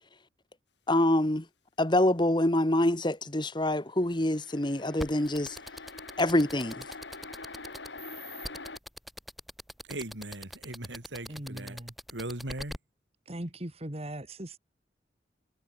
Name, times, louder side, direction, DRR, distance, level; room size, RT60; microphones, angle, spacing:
voice 1, 0.9-1.5 1.8-5.6 6.2-6.8, left 1 dB, 25° left, 1.7 m, -26 dB
sound 1, 4.0-8.8, left 3 dB, 75° left, 5.0 m, -45 dB
sound 2, 5.0-12.8, equal, ahead, 1.8 m, -41 dB
voice 2, 9.8-11.8 12.1-12.7, right 1 dB, 85° right, 4.0 m, -39 dB
voice 3, 11.3-11.9 13.3-14.6, right 1 dB, 35° right, 2.2 m, -39 dB
head